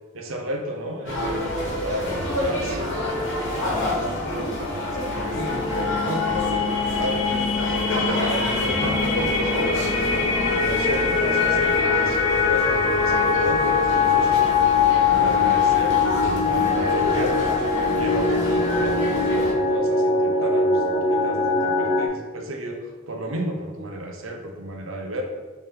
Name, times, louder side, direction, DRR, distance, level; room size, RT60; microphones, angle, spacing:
voice 1, 0.1-2.1 2.3-7.2 7.7-10.1 10.5-17.6 18.0-25.2, equal, 80° right, 3 dB, 0.7 m, -33 dB
sound 1, 1.1-19.5, left 1 dB, 65° left, 1.2 m, -28 dB
sound 2, 4.6-22.1, left 4 dB, 25° left, 0.4 m, -22 dB
4.3 x 3.4 x 3.7 m, 1.3 s
head